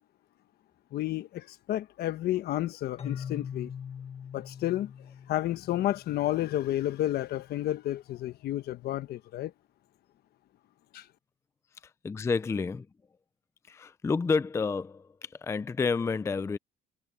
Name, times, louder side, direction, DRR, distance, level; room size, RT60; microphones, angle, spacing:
voice 1, 0.9-3.7 4.3-4.9 5.3-9.5 10.9-11.1, left 14 dB, 70° left, 1.2 m, -31 dB
Keyboard (musical), 3.0-6.7, left 8 dB, 35° left, 1.6 m, -42 dB
voice 2, 12.0-12.9 13.7-16.6, left 4 dB, 15° left, 0.4 m, -29 dB
cardioid pair, 110°, 17 cm